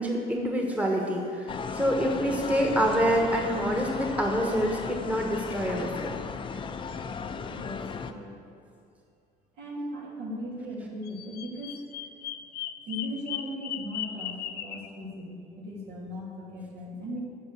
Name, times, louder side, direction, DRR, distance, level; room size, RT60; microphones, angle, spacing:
voice 1, 0.0-6.1, equal, 10° right, 0 dB, 1.4 m, -26 dB
sound 1, 1.5-8.1, left 5 dB, 30° left, 0.6 m, -36 dB
voice 2, 7.5-8.3 9.6-11.8 12.9-17.2, equal, 70° right, -4 dB, 3.2 m, -38 dB
Bird vocalization bird call bird song, 11.0-14.9, left 11 dB, 70° left, 0.6 m, -37 dB
13.5 x 5.5 x 7.1 m, 2.4 s
cardioid pair, 110°, 17 cm